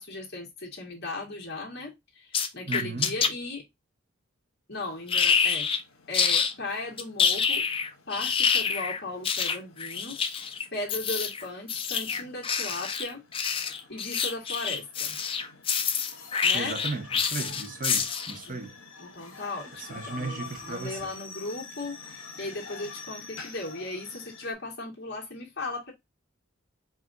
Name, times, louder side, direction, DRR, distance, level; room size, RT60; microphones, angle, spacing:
voice 1, 0.0-3.7 4.7-5.7 6.1-7.6 8.1-10.2 10.7-13.2 13.9-15.2 16.4-16.8 18.4-18.6 19.0-25.9, left 2 dB, 50° left, 1.8 m, -37 dB
sound 1, 2.3-3.3 5.1-5.8 6.1-6.5 7.0-18.4, left 6 dB, 25° left, 0.5 m, -27 dB
voice 2, 2.7-3.1 16.5-18.8 19.8-21.1, right 3 dB, 40° right, 0.8 m, -35 dB
sound 2, 4.7-24.5, left 4 dB, 85° left, 1.2 m, -48 dB
4.9 x 2.6 x 3.7 m
head